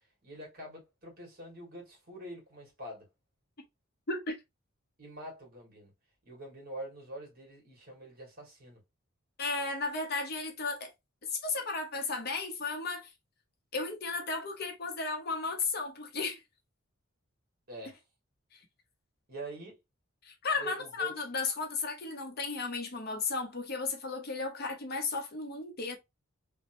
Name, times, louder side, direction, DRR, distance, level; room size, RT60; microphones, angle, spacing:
voice 1, 0.2-3.0 5.0-5.9 6.2-8.8 17.7-18.0 19.3-19.8 20.5-21.1, right 1 dB, 45° right, 1.6 m, -45 dB
voice 2, 4.1-4.4 9.4-10.9 11.3-13.1 13.7-16.4 18.5-18.6 20.2-26.0, left 4 dB, 50° left, 0.8 m, -34 dB
3.0 x 2.1 x 2.9 m
head